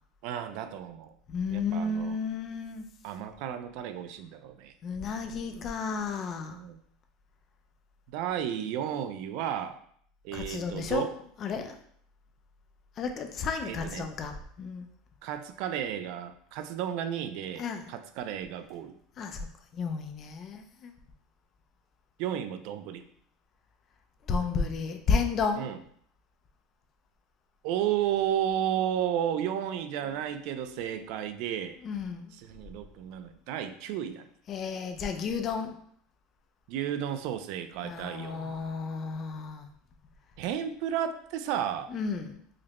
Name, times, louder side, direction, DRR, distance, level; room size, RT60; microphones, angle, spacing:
voice 1, 0.2-1.1 1.5-2.2 3.0-4.7 6.5-6.8 8.1-9.8 10.2-11.1 13.7-14.1 15.2-18.9 22.2-23.0 25.5-25.8 27.6-31.8 32.3-34.3 36.7-38.6 40.4-41.9, right 10 dB, 55° right, 9 dB, 0.3 m, -33 dB
voice 2, 1.3-2.9 4.8-6.6 10.3-11.1 11.4-11.8 13.0-14.9 17.6-17.9 19.2-19.4 19.7-20.9 24.3-25.7 31.8-32.4 34.5-35.7 37.8-39.7 41.9-42.4, left 5 dB, 30° left, 6 dB, 0.4 m, -32 dB
4.8 x 2.1 x 2.9 m, 0.63 s
cardioid pair, 170°, 0 cm